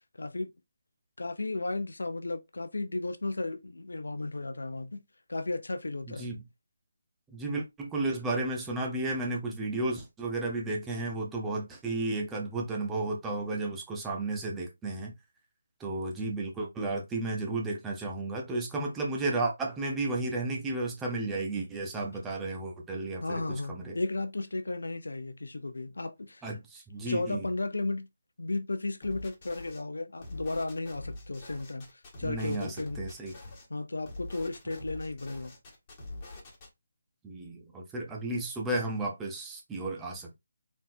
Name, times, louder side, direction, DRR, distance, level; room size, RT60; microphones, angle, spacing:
voice 1, 0.2-0.5 1.2-5.0 5.3-6.3 23.2-26.4 27.1-28.1 28.4-33.0 33.7-35.5, left 2 dB, 75° left, 0.6 m, -34 dB
voice 2, 7.3-15.1 15.8-24.0 26.4-27.5 32.2-33.3 37.2-40.3, right 2 dB, 10° right, 1.0 m, -33 dB
sound 1, 29.0-29.8 30.2-33.7 34.0-36.7, left 2 dB, 25° left, 1.8 m, -44 dB
4.1 x 3.8 x 2.7 m
figure-of-eight pair, 155°, 0 cm